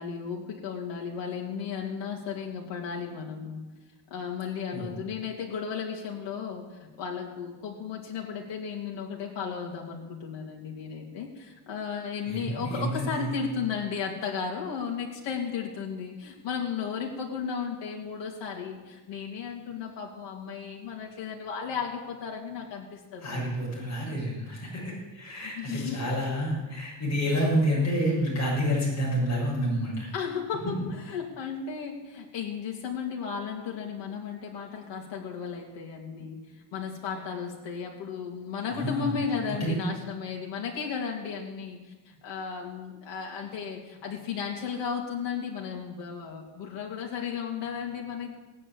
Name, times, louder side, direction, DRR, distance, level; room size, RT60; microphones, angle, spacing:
voice 1, 0.0-3.6 4.1-23.5 25.4-26.1 30.1-36.4 36.7-48.4, left 6 dB, 75° left, -1 dB, 2.6 m, -34 dB
voice 2, 12.3-13.2 23.2-30.1 38.7-39.1 39.5-39.8, equal, 40° left, -4 dB, 6.9 m, -29 dB
17.5 x 8.9 x 8.5 m, 1.1 s
cardioid pair, 165°, 43 cm